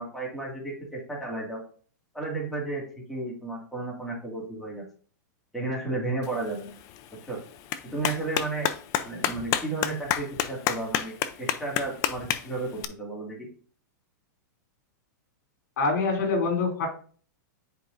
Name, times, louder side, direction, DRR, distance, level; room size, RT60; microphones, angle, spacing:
voice 1, 0.0-1.6 2.1-2.8 3.1-4.8 5.5-6.7 7.3-7.4 7.9-8.7 9.0-13.5, right 2 dB, ahead, -4 dB, 2.2 m, -33 dB
Clapping, 6.2-12.8, left 11 dB, 35° left, 0.6 m, -31 dB
voice 2, 15.8-16.9, left 3 dB, 65° left, 2 dB, 3.1 m, -25 dB
10.5 x 4.9 x 2.7 m, 0.44 s
supercardioid pair, 150°, 10 cm